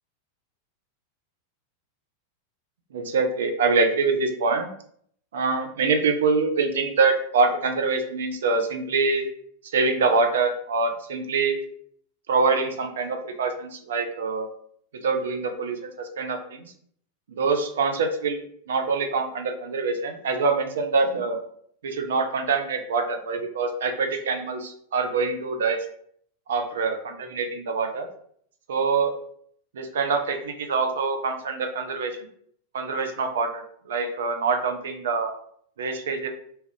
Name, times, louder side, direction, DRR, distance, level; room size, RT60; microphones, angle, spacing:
voice 1, 2.9-4.7 5.3-9.3 9.6-11.6 12.3-14.5 14.9-16.7 17.3-21.4 21.8-25.8 26.5-28.1 28.7-29.1 29.7-32.2 32.7-35.3 35.8-36.3, right 4 dB, 60° right, 5 dB, 0.4 m, -25 dB
2.8 x 2.4 x 3.1 m, 0.64 s
figure-of-eight pair, 90°, 0 cm